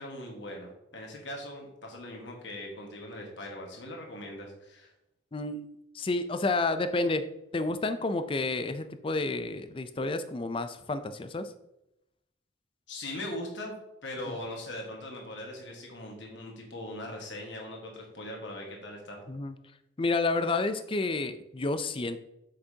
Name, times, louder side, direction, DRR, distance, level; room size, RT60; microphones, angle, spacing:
voice 1, 0.0-4.9 12.9-13.8 14.0-19.2, left 1 dB, 65° left, 1 dB, 1.5 m, -40 dB
voice 2, 5.3-5.7 5.9-7.3 7.5-11.5 14.3-14.4 19.3-19.5 20.0-22.2, left 3 dB, 25° left, 10 dB, 0.4 m, -30 dB
7.9 x 5.8 x 2.8 m, 0.86 s
head